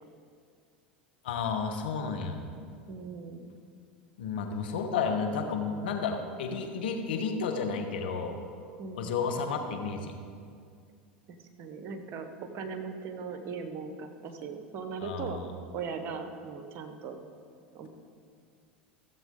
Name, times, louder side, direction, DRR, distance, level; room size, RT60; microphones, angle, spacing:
voice 1, 1.2-2.4 4.2-8.3 8.9-10.1 15.0-15.5, left 5 dB, 75° left, 4 dB, 1.2 m, -32 dB
voice 2, 2.9-3.4 8.8-9.2 11.6-15.4 15.7-17.2 17.7-17.9, right 5 dB, 50° right, 7 dB, 1.2 m, -39 dB
15.5 x 7.4 x 3.8 m, 2.2 s
hypercardioid pair, 90°, 5 cm